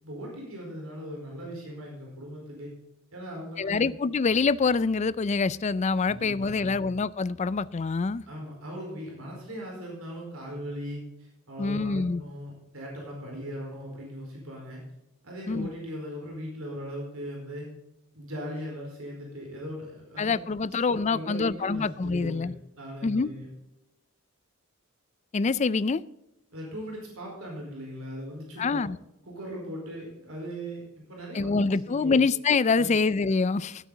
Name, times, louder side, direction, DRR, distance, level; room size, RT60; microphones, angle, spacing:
voice 1, 0.0-2.7 3.1-3.9 6.0-6.7 8.3-14.8 15.2-17.7 18.1-20.3 20.9-22.5 22.8-23.5 26.5-28.8 29.2-32.2 32.7-33.0, equal, 75° right, 4.6 m, -39 dB
voice 2, 3.6-8.2 11.6-12.2 15.5-15.7 20.2-22.5 23.0-23.3 25.3-26.0 28.6-29.0 31.3-33.8, left 4 dB, 30° left, 0.4 m, -25 dB
17.0 x 8.3 x 4.0 m
head